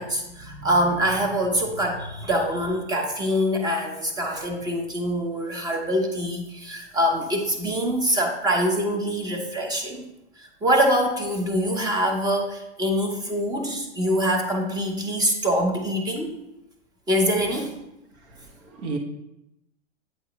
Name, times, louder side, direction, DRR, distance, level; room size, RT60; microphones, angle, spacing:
voice 1, 0.0-10.0 10.4-16.3 17.1-17.7, equal, 10° right, 3 dB, 0.8 m, -24 dB
voice 2, 18.3-19.0, right 4 dB, 70° right, 2 dB, 1.5 m, -33 dB
8.6 x 4.6 x 3.0 m, 0.88 s
hypercardioid pair, 140°, 35 cm